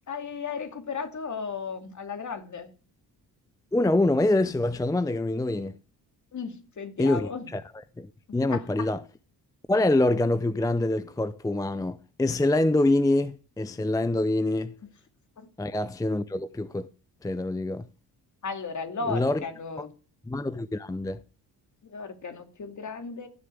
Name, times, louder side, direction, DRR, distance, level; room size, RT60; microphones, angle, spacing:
voice 1, 0.1-2.7 6.3-7.5 8.5-8.9 15.4-15.5 18.4-19.9 21.9-23.3, left 5 dB, 45° left, 2.6 m, -35 dB
voice 2, 3.7-5.7 7.0-7.6 8.0-8.1 8.3-9.0 9.7-14.7 15.6-16.9 17.2-17.9 19.0-19.4 19.8-19.9 20.3-21.2, left 2 dB, 10° left, 0.6 m, -25 dB
14.5 x 6.6 x 8.2 m
cardioid pair, 85°, 40 cm